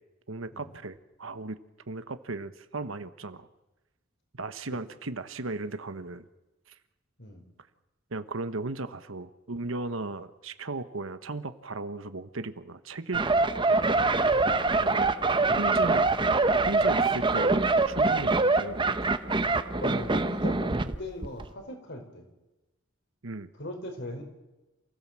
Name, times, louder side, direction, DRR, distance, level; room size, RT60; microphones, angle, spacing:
voice 1, 0.3-1.6 1.9-3.5 4.4-6.2 8.1-14.0 14.8-15.1 15.6-19.1 23.2-23.5, right 3 dB, 80° right, 11 dB, 1.2 m, -36 dB
sound 1, 13.1-21.0 21.2-21.5, right 3 dB, 25° right, 0.9 m, -24 dB
voice 2, 19.8-22.3 23.5-24.2, left 1 dB, 60° left, 5 dB, 4.9 m, -39 dB
28.0 x 16.0 x 7.5 m, 1.0 s
head